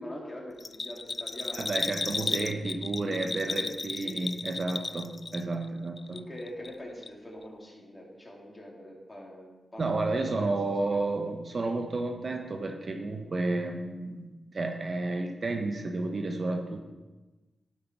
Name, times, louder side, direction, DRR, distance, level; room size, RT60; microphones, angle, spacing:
voice 1, 0.0-4.2 6.1-9.5 9.7-10.5 10.9-11.0, left 1 dB, 25° left, -3 dB, 3.0 m, -44 dB
Bell, 0.6-5.7 6.0-6.8 7.0-7.1, left 3 dB, 40° left, 0.3 m, -34 dB
voice 2, 1.5-6.2 9.8-16.8, right 2 dB, 50° right, 4 dB, 1.0 m, -31 dB
12.0 x 5.0 x 4.6 m, 1.1 s
cardioid pair, 60°, 0 cm